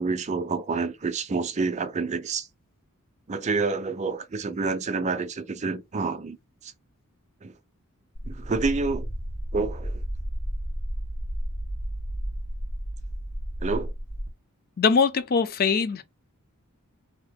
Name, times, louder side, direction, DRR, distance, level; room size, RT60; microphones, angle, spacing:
voice 1, 0.0-2.5 3.3-6.4 6.6-6.7 7.4-7.5 8.2-9.1 9.5-10.0 13.6-13.9, right 4 dB, 30° right, 0.4 m, -28 dB
sound 1, 8.1-14.3, equal, 80° left, 1.2 m, -32 dB
voice 2, 14.8-16.0, left 5 dB, 40° left, 0.4 m, -22 dB
2.8 x 2.5 x 3.5 m
head